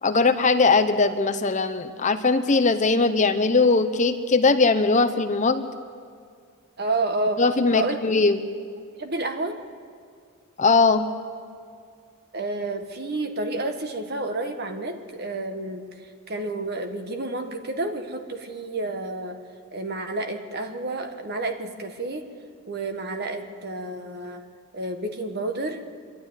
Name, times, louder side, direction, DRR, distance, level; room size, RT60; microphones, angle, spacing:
voice 1, 0.0-5.7 7.4-8.5 10.6-11.1, left 3 dB, 35° left, 9 dB, 0.8 m, -20 dB
voice 2, 6.8-7.4 7.7-8.0 9.0-9.6 12.3-15.8 16.3-19.4 19.7-22.3 22.7-24.4 24.7-25.8, right 2 dB, 45° right, 6 dB, 1.6 m, -30 dB
26.0 x 12.0 x 9.7 m, 2.2 s
head